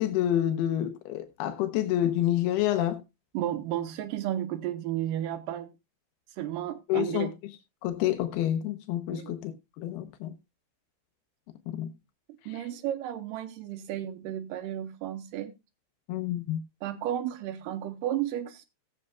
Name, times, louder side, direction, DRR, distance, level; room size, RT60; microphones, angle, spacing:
voice 1, 0.0-3.0 6.9-7.3 7.8-9.5 9.8-10.4 11.7-11.9 12.5-12.6 16.1-16.6, left 12 dB, 90° left, 2.9 m, -28 dB
voice 2, 3.3-5.7 6.4-7.3 9.1-9.3 12.5-15.5 16.8-18.7, right 11 dB, 75° right, 2.2 m, -33 dB
18.5 x 7.8 x 2.2 m
omnidirectional pair, 4.4 m